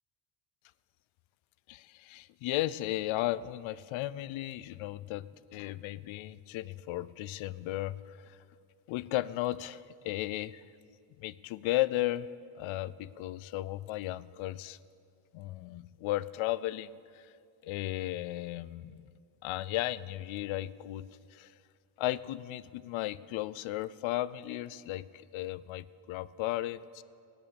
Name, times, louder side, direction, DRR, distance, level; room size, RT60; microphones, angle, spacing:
voice 1, 1.7-8.4 8.9-10.6 11.2-12.3 12.5-14.8 15.3-17.3 17.6-19.1 19.4-21.5 22.0-27.0, left 15 dB, 70° left, 18 dB, 0.6 m, -35 dB
16.0 x 10.5 x 7.1 m, 2.4 s
cardioid pair, 155°, 49 cm